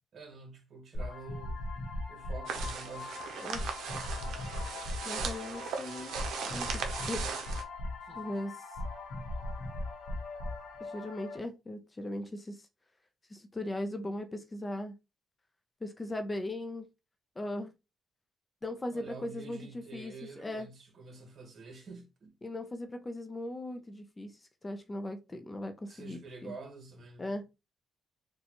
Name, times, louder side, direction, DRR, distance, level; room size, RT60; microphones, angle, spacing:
voice 1, 0.1-1.6 2.1-3.2 8.0-8.4 18.9-22.3 25.9-27.3, right 4 dB, 55° right, 1.2 m, -48 dB
sound 1, 0.9-11.4, left 2 dB, 65° left, 0.9 m, -39 dB
sound 2, 2.4-7.6, right 6 dB, 80° right, 0.6 m, -38 dB
voice 2, 5.0-6.8 7.1-7.2 8.1-8.6 10.8-12.6 13.3-14.9 15.8-16.8 17.4-17.7 18.6-20.7 22.4-24.3 24.6-26.5 27.2-27.5, left 1 dB, 20° left, 0.6 m, -38 dB
4.0 x 2.3 x 2.9 m
cardioid pair, 90°, 0 cm